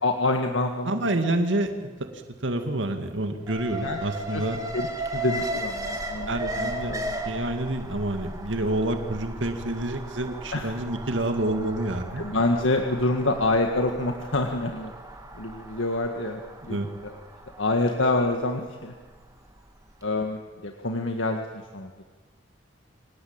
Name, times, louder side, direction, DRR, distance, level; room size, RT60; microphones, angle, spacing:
voice 1, 0.0-1.2 3.7-4.0 4.3-4.4 4.7-7.2 10.5-10.7 12.2-14.9 15.3-16.8 17.0-17.2 17.6-18.9 20.0-21.9, left 2 dB, 90° left, 3 dB, 1.9 m, -27 dB
voice 2, 0.9-4.6 6.3-6.9 7.2-12.2 16.7-16.9, right 1 dB, 75° right, 6 dB, 2.2 m, -28 dB
Alarm, 3.5-19.6 19.9-20.0, right 1 dB, 20° right, 2.4 m, -36 dB
27.0 x 18.0 x 8.8 m, 1.4 s
head